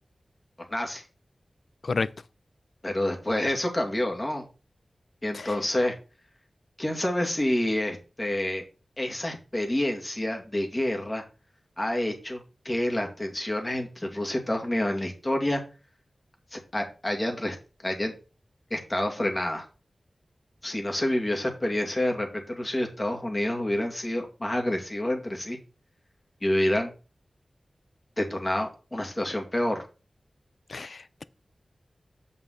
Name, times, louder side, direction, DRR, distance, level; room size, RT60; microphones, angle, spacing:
voice 1, 0.7-1.0 2.8-4.4 5.2-6.0 6.8-8.6 9.0-11.2 11.8-12.4 12.6-15.6 16.5-17.6 17.8-18.1 18.7-19.7 20.6-25.6 26.4-26.9 28.2-29.8, left 1 dB, 30° left, 2.2 m, -28 dB
voice 2, 30.7-31.2, left 4 dB, 70° left, 0.5 m, -30 dB
8.0 x 5.4 x 4.0 m
wide cardioid pair, 65°, 0 cm